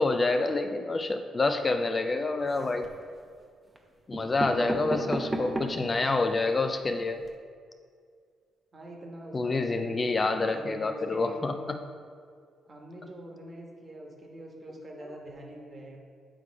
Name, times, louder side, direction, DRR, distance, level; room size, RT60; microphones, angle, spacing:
voice 1, 0.0-2.9 4.1-7.2 9.3-11.8, left 3 dB, 30° left, 6 dB, 0.3 m, -27 dB
sound 1, 2.4-3.0 3.7-3.8 4.1-5.9 6.4-6.5 6.7-6.8 7.1-7.3, right 1 dB, 20° right, 0.8 m, -34 dB
voice 2, 4.7-5.5 8.7-11.5 12.6-16.0, right 1 dB, 40° right, 0 dB, 1.4 m, -43 dB
8.6 x 3.3 x 4.7 m, 2.1 s
cardioid pair, 90°, 0 cm